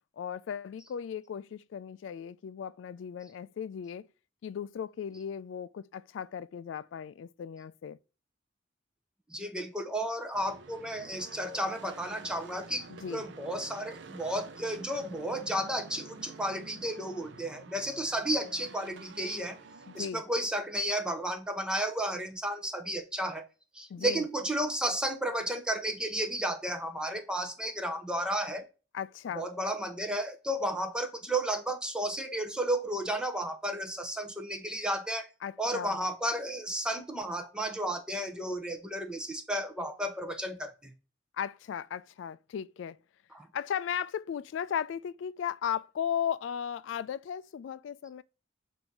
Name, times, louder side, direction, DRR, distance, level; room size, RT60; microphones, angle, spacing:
voice 1, 0.2-4.1 4.4-8.0 12.9-13.2 19.9-20.2 23.9-24.2 28.9-29.4 35.4-36.0 41.4-43.0 43.5-48.2, left 8 dB, 85° left, 0.3 m, -36 dB
voice 2, 9.3-19.6 19.9-23.4 23.7-28.6 29.3-35.3 35.6-40.9 43.3-43.5, right 1 dB, 5° right, 0.6 m, -33 dB
sound 1, 10.3-20.1, right 3 dB, 75° right, 0.6 m, -49 dB
7.8 x 2.7 x 5.8 m
head